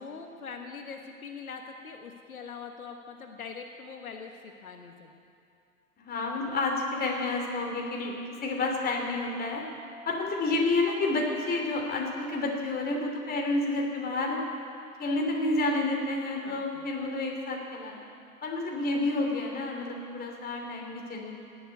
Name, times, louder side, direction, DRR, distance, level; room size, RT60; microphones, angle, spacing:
voice 1, 0.0-5.1 16.4-16.9, left 5 dB, 75° left, 4 dB, 1.3 m, -43 dB
voice 2, 6.0-8.1 8.4-9.6 10.0-14.4 15.0-18.0 18.4-21.3, left 2 dB, 20° left, 0 dB, 3.0 m, -29 dB
17.5 x 7.9 x 9.2 m, 2.5 s
figure-of-eight pair, 100°, 43 cm